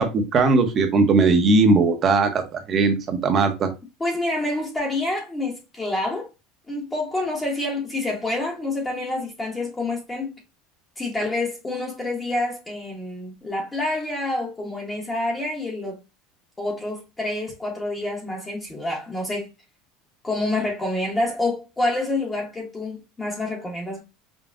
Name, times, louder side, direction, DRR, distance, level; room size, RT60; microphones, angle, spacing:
voice 1, 0.0-3.7, right 3 dB, 30° right, 0.8 m, -19 dB
voice 2, 4.0-6.3 6.7-10.3 11.0-16.0 16.6-19.5 20.2-24.0, left 2 dB, 10° left, 1.0 m, -27 dB
5.2 x 2.2 x 2.4 m
cardioid pair, 150°, 0 cm